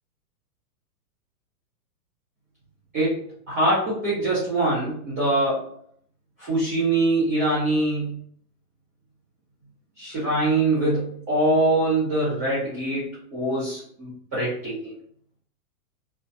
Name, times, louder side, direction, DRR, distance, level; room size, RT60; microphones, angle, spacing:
voice 1, 3.5-5.7 6.4-8.2 10.0-14.9, right 2 dB, 10° right, -9 dB, 0.4 m, -23 dB
2.6 x 2.1 x 2.6 m, 0.63 s
supercardioid pair, 170°, 48 cm